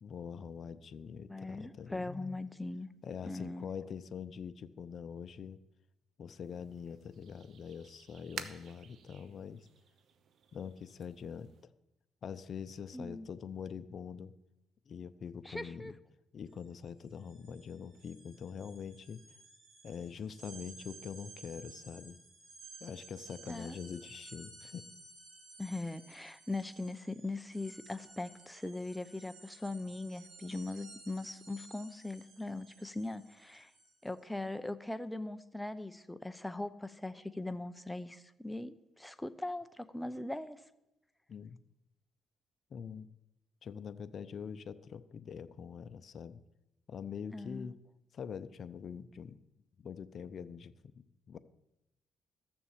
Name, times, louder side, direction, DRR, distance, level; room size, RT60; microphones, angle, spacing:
voice 1, 0.0-2.4 3.0-5.6 6.2-9.7 10.5-11.7 12.2-14.3 14.9-15.9 16.3-19.2 19.8-22.2 22.8-24.9 41.3-41.6 42.7-43.1 43.6-46.4 46.9-47.8 48.1-49.4 49.8-51.4, left 7 dB, 55° left, 12 dB, 0.6 m, -44 dB
voice 2, 1.3-2.9 3.2-3.7 12.9-13.3 15.5-15.9 23.5-23.8 25.6-33.7 34.0-40.6 47.3-47.7, left 2 dB, 5° left, 12 dB, 0.7 m, -40 dB
sound 1, 6.4-11.6, right 7 dB, 65° right, 0.9 m, -51 dB
sound 2, 16.5-16.7 17.0-34.2, right 3 dB, 90° right, 4.7 m, -55 dB
14.0 x 7.0 x 7.4 m, 0.92 s
cardioid pair, 90°, 0 cm